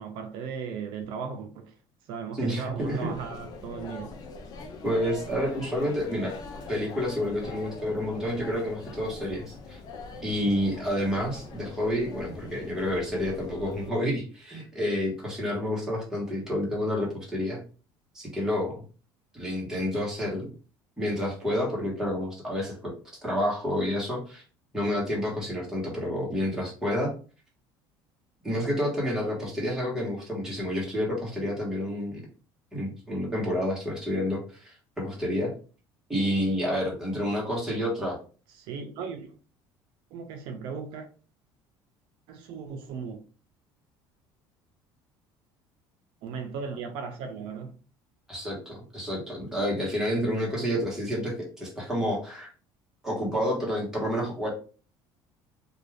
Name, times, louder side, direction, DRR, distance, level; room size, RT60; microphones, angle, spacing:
voice 1, 0.0-1.7 2.1-4.2 38.5-39.4 40.1-41.1 42.3-43.2 46.2-47.7, right 6 dB, 65° right, 0.5 m, -37 dB
voice 2, 2.4-3.1 4.8-6.3 6.7-9.8 10.2-17.6 18.1-18.8 19.3-20.5 21.0-22.9 23.2-24.4 24.7-27.1 28.4-32.2 32.7-35.5 36.1-38.2 48.3-52.5 53.0-54.5, equal, 5° right, 1.2 m, -29 dB
sound 1, 2.8-13.9, left 3 dB, 45° left, 0.5 m, -42 dB
2.5 x 2.4 x 3.2 m
cardioid pair, 145°, 9 cm